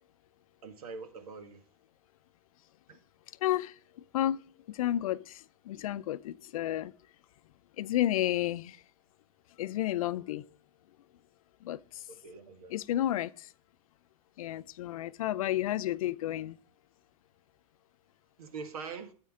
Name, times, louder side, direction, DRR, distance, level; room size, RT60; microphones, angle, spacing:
voice 1, 0.6-1.6 2.9-3.0 12.1-12.7 18.4-19.1, right 5 dB, 90° right, 1.7 m, -43 dB
voice 2, 3.4-4.4 4.7-6.9 7.8-8.8 9.6-10.4 11.6-12.0 12.7-13.5 14.4-16.6, left 13 dB, 75° left, 0.5 m, -32 dB
9.4 x 8.1 x 3.7 m
supercardioid pair, 140°, 18 cm